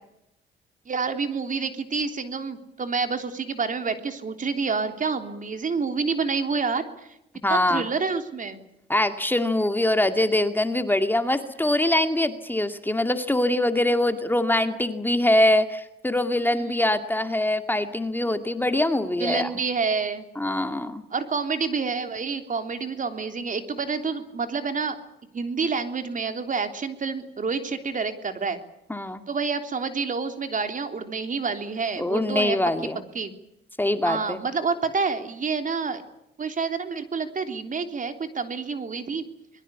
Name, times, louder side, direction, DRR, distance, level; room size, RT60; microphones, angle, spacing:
voice 1, 0.8-7.1 7.5-8.6 16.6-16.8 19.2-20.2 21.1-25.0 25.3-28.6 29.3-32.6 33.1-33.3 34.0-36.0 36.4-39.2, right 5 dB, 40° right, 8 dB, 3.4 m, -28 dB
voice 2, 7.4-7.9 8.9-19.5 20.4-21.0 28.9-29.2 32.0-33.0 33.8-34.4, left 1 dB, 10° left, 8 dB, 2.2 m, -23 dB
26.0 x 22.0 x 8.4 m, 0.83 s
cardioid pair, 90°, 20 cm